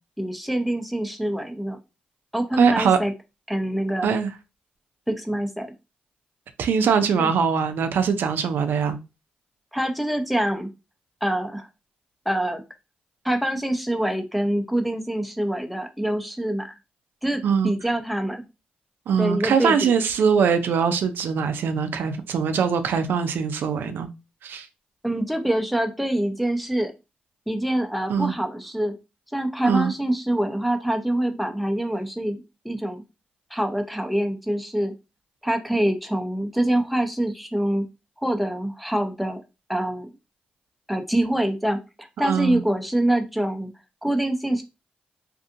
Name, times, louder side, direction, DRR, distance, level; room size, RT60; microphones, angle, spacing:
voice 1, 0.2-1.8 2.3-3.1 3.5-4.2 5.1-5.7 7.2-7.3 9.7-10.7 11.2-11.7 12.3-12.6 13.2-16.7 17.2-18.4 19.2-19.9 25.0-26.9 27.5-28.9 29.3-33.0 33.5-34.9 35.4-37.9 38.2-39.4 39.7-40.1 40.9-43.7 44.0-44.6, right 1 dB, ahead, 0.6 m, -25 dB
voice 2, 2.6-3.0 4.0-4.3 6.6-9.0 17.4-17.7 19.1-24.1 24.4-24.7 28.1-28.3 29.6-29.9 42.2-42.6, right 6 dB, 75° right, 0.3 m, -22 dB
2.6 x 2.4 x 2.5 m
supercardioid pair, 55°, 4 cm